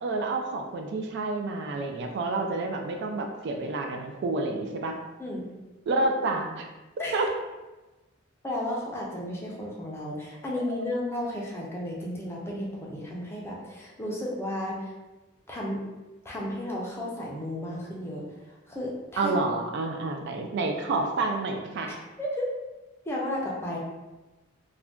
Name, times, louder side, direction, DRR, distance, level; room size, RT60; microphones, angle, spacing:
voice 1, 0.0-5.0 5.9-6.7 7.1-7.3 10.7-10.8 19.2-21.9, right 3 dB, 55° right, 3 dB, 0.3 m, -29 dB
voice 2, 5.2-5.5 7.0-7.2 8.4-14.9 15.5-15.8 16.2-18.2 18.7-19.3 22.2-22.5 23.1-23.8, left 1 dB, 10° left, -3 dB, 0.4 m, -33 dB
2.5 x 2.2 x 3.5 m, 1.1 s
head